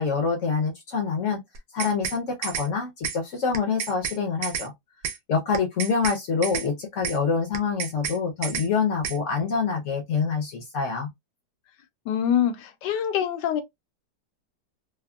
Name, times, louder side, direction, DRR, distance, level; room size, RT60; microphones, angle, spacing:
voice 1, 0.0-1.4 1.7-4.7 5.3-11.1, left 5 dB, 60° left, 0.9 m, -26 dB
sound 1, 1.6-2.2 2.4-2.7 3.0-3.2 3.5-4.2 4.4-4.7 5.0-5.2 5.5-6.2 6.4-6.7 7.0-7.2 7.5-8.2 8.4-8.7 9.0-9.2, right 7 dB, 75° right, 1.2 m, -30 dB
voice 2, 12.1-13.6, left 9 dB, 80° left, 1.2 m, -24 dB
3.4 x 2.1 x 2.3 m
omnidirectional pair, 1.9 m